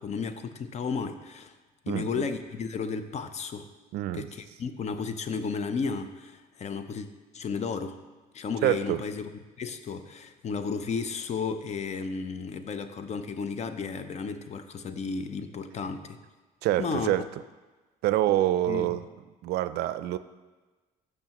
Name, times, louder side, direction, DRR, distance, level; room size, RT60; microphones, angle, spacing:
voice 1, 0.0-1.5 1.8-3.7 4.1-7.1 7.3-8.0 8.3-9.3 9.6-16.2 16.8-17.1 18.7-19.0, left 5 dB, 40° left, 10 dB, 0.6 m, -33 dB
voice 2, 1.9-2.2 3.9-4.3 8.6-9.0 16.6-17.3 18.0-19.0 19.4-20.2, right 14 dB, 75° right, 13 dB, 0.4 m, -26 dB
12.0 x 6.5 x 3.0 m, 1.3 s
cardioid pair, 110°, 17 cm